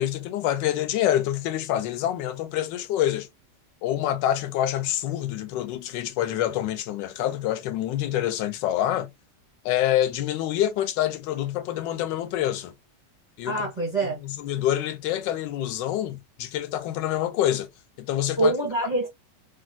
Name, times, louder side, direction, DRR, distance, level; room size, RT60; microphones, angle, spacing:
voice 1, 0.0-3.3 3.8-9.1 9.6-12.7 13.4-13.7 14.0-17.7 18.0-18.5, left 12 dB, 85° left, 1.3 m, -26 dB
voice 2, 13.5-14.2 18.4-19.1, right 2 dB, ahead, 1.0 m, -25 dB
3.1 x 2.7 x 2.3 m
omnidirectional pair, 1.9 m